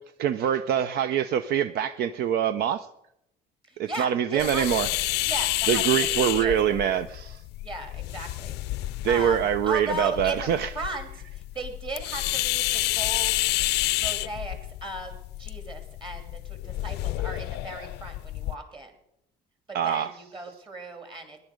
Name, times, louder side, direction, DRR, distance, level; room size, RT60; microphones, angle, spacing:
voice 1, 0.2-2.9 3.8-4.9 5.7-7.4 9.0-10.7 19.7-20.1, right 9 dB, 70° right, 12 dB, 0.5 m, -24 dB
voice 2, 3.6-4.8 5.2-6.8 7.6-13.5 14.0-18.9 19.7-21.4, right 2 dB, 30° right, 5 dB, 3.0 m, -37 dB
sound 1, 4.4-18.6, left 17 dB, 85° left, 0.5 m, -30 dB
16.5 x 11.0 x 5.1 m, 0.80 s
cardioid pair, 110°, 17 cm